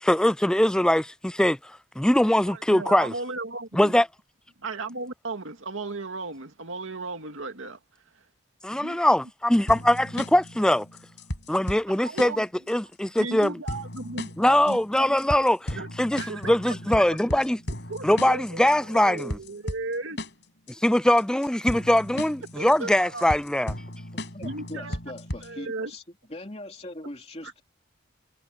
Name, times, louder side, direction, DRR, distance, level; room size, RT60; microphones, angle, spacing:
voice 1, 0.0-3.1 3.7-4.1 8.6-10.9 11.5-13.6 14.4-17.6 18.0-19.4 20.7-23.8, left 1 dB, 5° left, 0.3 m, -22 dB
voice 2, 2.5-3.9 4.6-7.8 8.7-9.0 12.0-12.4 13.2-14.3 14.7-15.1 15.8-16.8 17.9-20.2 22.6-23.4 24.4-25.0 25.4-25.9 27.4-27.5, right 3 dB, 90° right, 2.3 m, -36 dB
sound 1, 9.7-25.7, left 1 dB, 60° left, 6.2 m, -36 dB
voice 3, 24.3-26.0 26.3-27.6, left 1 dB, 30° left, 3.0 m, -40 dB
head